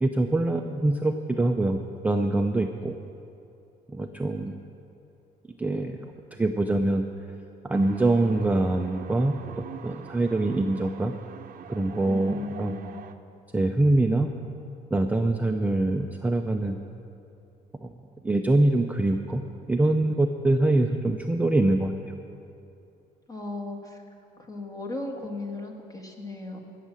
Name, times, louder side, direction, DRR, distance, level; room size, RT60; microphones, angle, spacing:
voice 1, 0.0-1.8 2.0-2.9 3.9-4.6 5.6-7.0 7.6-9.3 9.8-11.2 11.7-12.8 13.5-14.3 14.9-16.8 17.8-17.9 18.2-19.4 19.7-21.9, right 2 dB, 10° right, 4 dB, 0.5 m, -24 dB
sound 1, 7.7-13.1, right 8 dB, 55° right, 0.7 m, -45 dB
voice 2, 12.1-13.0 23.3-24.0 24.4-26.6, left 2 dB, 20° left, 1 dB, 1.7 m, -36 dB
16.5 x 6.6 x 7.5 m, 2.7 s
cardioid pair, 110°, 17 cm